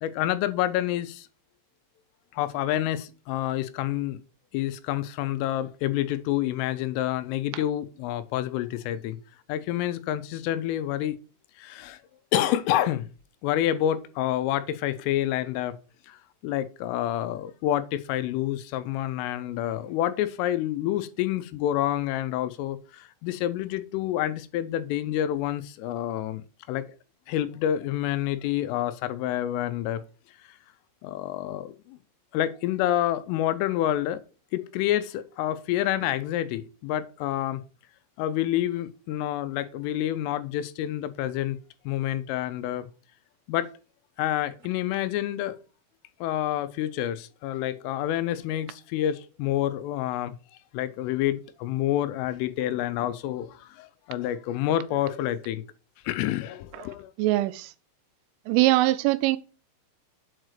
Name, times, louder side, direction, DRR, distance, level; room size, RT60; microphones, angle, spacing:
voice 1, 0.0-1.3 2.3-4.2 4.5-9.2 9.5-11.2 11.6-12.0 12.3-13.1 13.4-15.8 16.1-26.9 27.3-30.0 30.5-30.6 31.0-32.0 32.3-34.2 34.5-37.6 38.2-41.6 41.9-42.9 43.5-43.7 44.2-45.6 46.2-50.4 50.7-55.6 56.0-57.1, left 12 dB, 85° left, 3.2 m, -28 dB
voice 2, 57.2-57.7 58.5-59.4, right 17 dB, 85° right, 3.0 m, -22 dB
7.8 x 4.8 x 6.4 m
omnidirectional pair, 5.8 m